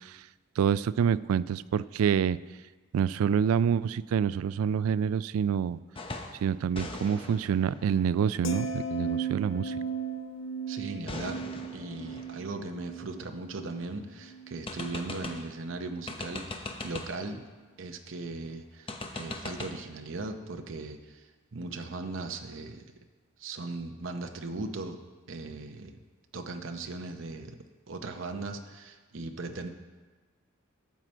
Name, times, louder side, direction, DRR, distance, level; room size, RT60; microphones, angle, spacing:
voice 1, 0.6-2.4 2.9-5.8 6.4-9.7, right 7 dB, 90° right, 18 dB, 0.3 m, -27 dB
sound 1, 5.9-6.4 6.7-9.4 11.1-13.8 14.1-14.2 14.7-15.6 16.1-17.3 18.9-19.7, left 2 dB, 25° left, 0.8 m, -41 dB
sound 2, 8.4-14.7 15.1-15.4, right 4 dB, 65° left, 0.8 m, -36 dB
voice 2, 10.7-11.4 11.7-17.4 17.8-22.8 23.4-25.0 25.3-25.9 26.3-27.6 27.9-29.7, right 3 dB, 65° right, 5 dB, 0.7 m, -38 dB
12.5 x 7.6 x 4.4 m, 1.3 s
head